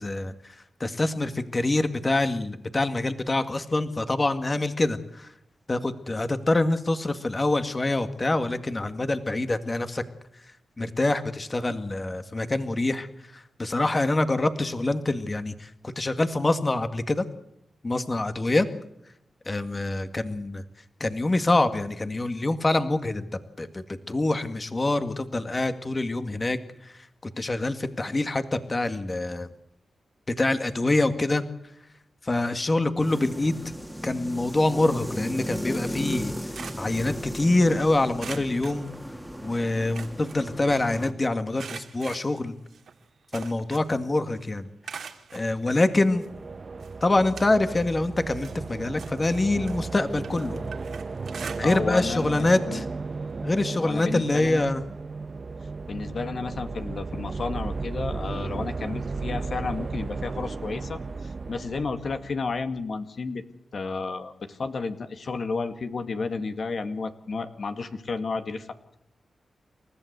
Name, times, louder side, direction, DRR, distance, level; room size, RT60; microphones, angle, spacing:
voice 1, 0.0-5.3 5.7-10.0 10.8-17.3 17.8-18.7 19.5-20.6 21.0-23.3 23.6-29.5 30.3-31.4 32.2-33.6 34.0-36.3 36.8-38.9 39.4-42.6 43.3-44.7 45.3-46.2 47.0-50.6 51.6-52.9 53.4-54.8, left 2 dB, 35° left, 9 dB, 2.0 m, -25 dB
sound 1, 33.0-41.1, equal, 5° left, 2.4 m, -36 dB
sound 2, 36.2-37.7 38.2-39.5 39.8-41.1 41.6-44.1 44.4-45.5 46.2-46.3 46.8-47.9 48.2-52.0 52.3-52.6 52.9-53.0 54.2-54.3, right 6 dB, 80° right, 2.4 m, -43 dB
sound 3, 45.8-62.8, right 4 dB, 50° right, 1.0 m, -35 dB
voice 2, 51.6-52.8 53.8-54.6 55.9-63.4 63.7-69.0, left 4 dB, 65° left, 7 dB, 2.1 m, -32 dB
29.0 x 14.5 x 8.1 m, 0.79 s
cardioid pair, 55°, 0 cm